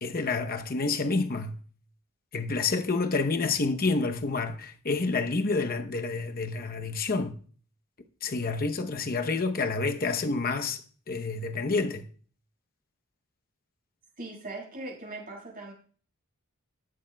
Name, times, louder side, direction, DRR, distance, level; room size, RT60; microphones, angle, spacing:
voice 1, 0.0-1.6 2.3-7.4 8.2-12.1, left 3 dB, 40° left, 0.8 m, -28 dB
voice 2, 14.2-15.7, right 2 dB, 40° right, 5.9 m, -40 dB
16.5 x 11.5 x 2.3 m
head